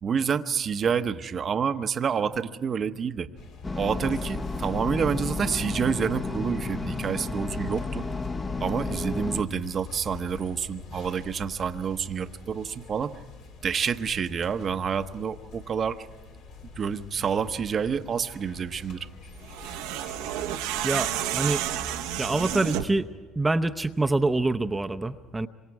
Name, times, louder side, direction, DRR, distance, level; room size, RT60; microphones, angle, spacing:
voice 1, 0.0-3.3 3.8-8.1 8.6-13.2 13.6-16.1 16.8-19.1, right 7 dB, 45° right, 10 dB, 0.9 m, -28 dB
sound 1, 3.4-22.6, left 4 dB, 75° left, 3.8 m, -46 dB
sound 2, 3.6-9.4, left 3 dB, 25° left, 1.0 m, -32 dB
sound 3, 19.4-23.0, right 11 dB, 80° right, 1.0 m, -30 dB
voice 2, 20.8-21.6 22.2-23.1 23.4-25.5, right 2 dB, 15° right, 8 dB, 0.8 m, -26 dB
26.5 x 24.5 x 4.8 m, 1.4 s
supercardioid pair, 75°, 0 cm